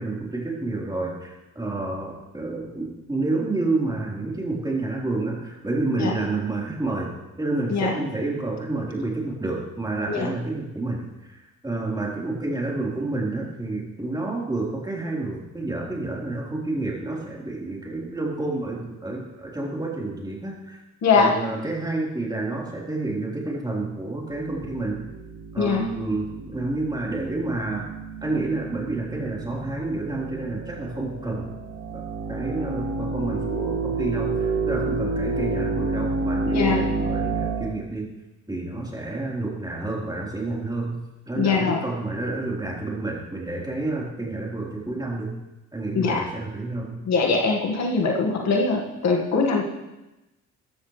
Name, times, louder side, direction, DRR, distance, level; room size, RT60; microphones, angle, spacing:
voice 1, 0.0-20.8 21.1-25.0 25.5-27.9 28.2-31.5 31.9-38.1 38.5-41.0 41.3-45.3 45.7-46.9, right 2 dB, 15° right, -4 dB, 4.2 m, -29 dB
voice 2, 21.0-21.3 25.6-25.8 36.5-36.8 41.4-41.8 45.9-46.2 47.0-49.6, left 4 dB, 60° left, 0 dB, 2.0 m, -22 dB
sound 1, 24.3-37.8, right 3 dB, 40° right, 1.4 m, -30 dB
14.0 x 13.0 x 3.4 m, 1.0 s
cardioid pair, 90°, 30 cm